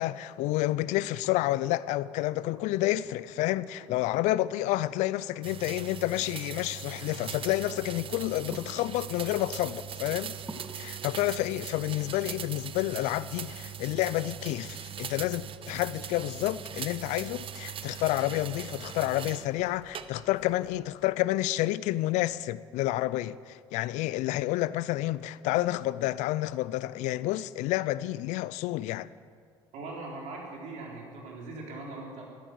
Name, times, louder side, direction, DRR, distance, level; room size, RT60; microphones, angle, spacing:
voice 1, 0.0-10.4 10.7-29.1, left 16 dB, 70° left, 0.5 m, -29 dB
sound 1, 1.2-15.2 16.9-17.0, right 2 dB, 15° right, 1.8 m, -53 dB
sound 2, 5.4-19.5 20.0-20.5, right 9 dB, 45° right, 0.8 m, -40 dB
sound 3, 7.2-21.0, left 3 dB, 50° left, 4.3 m, -59 dB
voice 2, 29.7-32.2, right 2 dB, 70° right, 4.2 m, -40 dB
14.5 x 12.5 x 6.3 m
hypercardioid pair, 65°, 13 cm